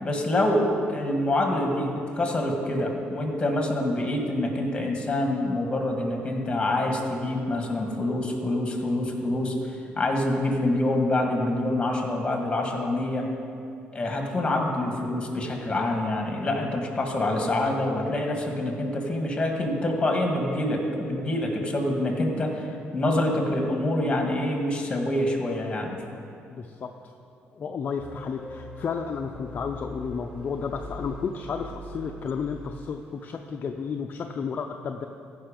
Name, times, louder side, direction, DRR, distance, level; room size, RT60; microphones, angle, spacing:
voice 1, 0.0-13.3 13.9-26.0, left 1 dB, 20° left, 2 dB, 1.7 m, -26 dB
voice 2, 26.5-27.1 27.5-35.1, left 6 dB, 40° left, 4 dB, 0.5 m, -32 dB
sound 1, 28.0-33.0, equal, 20° right, 1.3 m, -42 dB
15.0 x 5.5 x 5.1 m, 2.6 s
cardioid pair, 110°, 4 cm